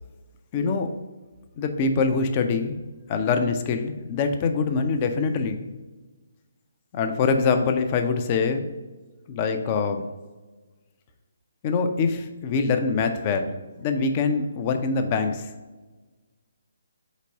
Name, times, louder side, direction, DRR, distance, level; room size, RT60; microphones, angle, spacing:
voice 1, 0.5-0.9 1.6-2.8 3.1-5.7 6.9-8.7 9.3-10.1 11.6-15.5, left 4 dB, 30° left, 6 dB, 0.5 m, -24 dB
4.4 x 4.1 x 5.2 m, 1.2 s
figure-of-eight pair, 140°, 0 cm